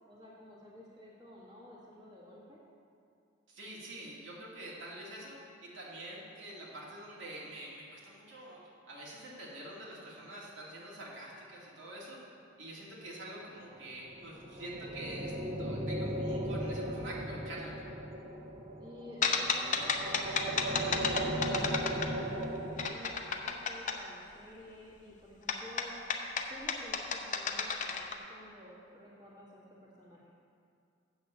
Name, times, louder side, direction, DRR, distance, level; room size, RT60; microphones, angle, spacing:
voice 1, 0.1-2.6 18.8-22.0 22.3-25.9 26.5-30.3, left 1 dB, 20° right, -6 dB, 1.6 m, -52 dB
voice 2, 3.5-12.2 12.6-15.3 15.6-17.8, right 1 dB, 80° right, -5 dB, 2.1 m, -46 dB
sound 1, 14.0-22.9, right 1 dB, 35° right, 1.0 m, -37 dB
sound 2, 19.2-22.4 22.8-24.0 25.5-28.2, left 5 dB, 40° left, 0.6 m, -32 dB
8.2 x 5.9 x 6.7 m, 2.4 s
head